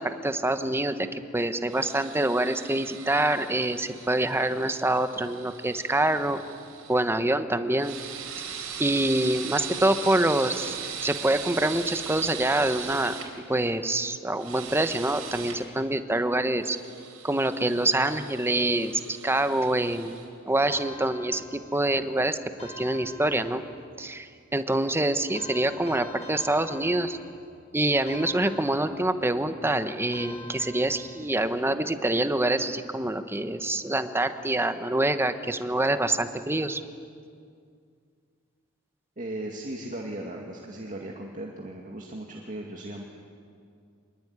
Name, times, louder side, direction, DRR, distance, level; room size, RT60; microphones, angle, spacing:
voice 1, 0.0-6.4 6.9-8.0 8.8-13.2 13.5-16.8 17.2-20.2 20.4-23.6 24.0-27.2 27.7-36.8, right 1 dB, 10° right, 9 dB, 1.1 m, -26 dB
sound 1, 1.7-7.0 7.7-13.3 14.4-15.6 16.6-20.3, right 7 dB, 75° right, 4.3 m, -39 dB
sound 2, 20.7-22.0 22.6-23.9 25.3-27.5 28.1-29.4 30.1-31.4, equal, 30° left, 4.6 m, -46 dB
voice 2, 39.2-43.0, right 1 dB, 40° right, 0 dB, 2.3 m, -37 dB
26.0 x 22.0 x 9.7 m, 2.3 s
head